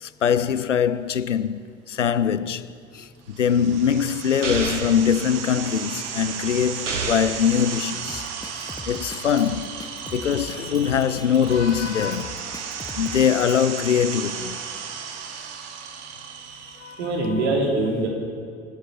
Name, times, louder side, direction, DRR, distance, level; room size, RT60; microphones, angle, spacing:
voice 1, 0.0-2.7 2.9-8.3 8.5-9.7 10.1-12.4 12.9-14.6 16.8-17.0, left 8 dB, 85° left, 0.5 m, -23 dB
sound 1, 3.3-17.1, right 7 dB, 45° right, 1.7 m, -35 dB
sound 2, 4.4-5.0 6.9-7.5, right 4 dB, 85° right, 1.1 m, -28 dB
Drum kit, 8.1-13.6, left 2 dB, 10° left, 1.1 m, -39 dB
voice 2, 16.6-18.1, right 2 dB, 65° right, 3.3 m, -24 dB
24.5 x 9.6 x 5.8 m
figure-of-eight pair, 65°, 36 cm